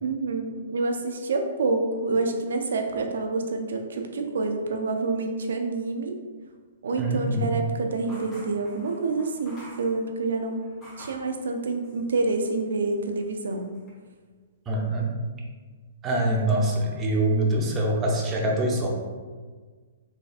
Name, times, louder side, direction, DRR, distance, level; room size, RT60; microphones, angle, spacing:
voice 1, 0.0-6.2 6.8-10.6 11.0-13.7, right 3 dB, 85° right, 4 dB, 0.5 m, -27 dB
voice 2, 7.0-7.5 14.7-15.1 16.0-18.9, right 1 dB, 20° right, -1 dB, 0.6 m, -24 dB
sound 1, 8.0-11.3 11.8-12.6 12.8-13.9, right 1 dB, 20° left, 1.2 m, -48 dB
3.9 x 3.2 x 2.4 m, 1.5 s
hypercardioid pair, 150°, 0 cm